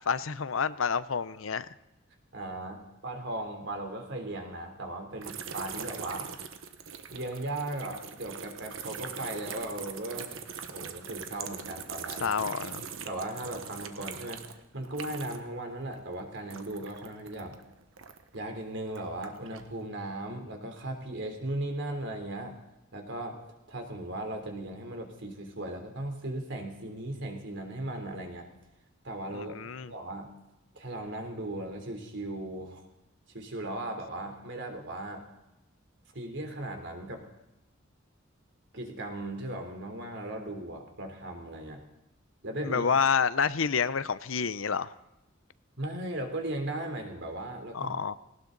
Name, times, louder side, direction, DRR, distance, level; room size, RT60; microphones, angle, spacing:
voice 1, 0.1-1.7 12.2-12.9 29.3-29.9 42.6-44.9 47.7-48.2, left 6 dB, 80° left, 15 dB, 0.7 m, -28 dB
voice 2, 2.3-6.3 7.1-10.4 10.7-12.3 13.1-14.4 14.7-17.6 18.3-22.6 22.9-23.4 23.7-28.5 29.0-29.6 29.9-30.3 30.7-32.9 33.3-35.2 36.1-37.2 38.7-41.8 42.4-42.9 45.8-48.0, right 1 dB, 65° right, 4 dB, 3.4 m, -37 dB
sound 1, 5.2-15.6 15.8-18.4 18.9-19.7, right 6 dB, 85° right, 1.3 m, -42 dB
19.0 x 18.5 x 4.0 m, 0.95 s
head